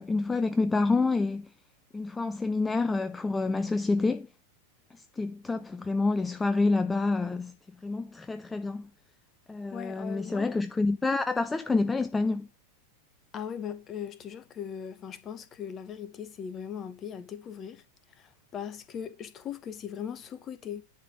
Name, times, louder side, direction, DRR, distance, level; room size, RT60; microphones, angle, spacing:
voice 1, 0.0-1.5 1.9-4.3 5.2-7.5 7.8-8.9 9.5-12.5, left 3 dB, 10° left, 0.4 m, -28 dB
voice 2, 9.7-10.5 13.3-17.8 18.2-20.8, left 8 dB, 30° left, 1.0 m, -39 dB
10.5 x 4.0 x 6.0 m
figure-of-eight pair, 90°, 0 cm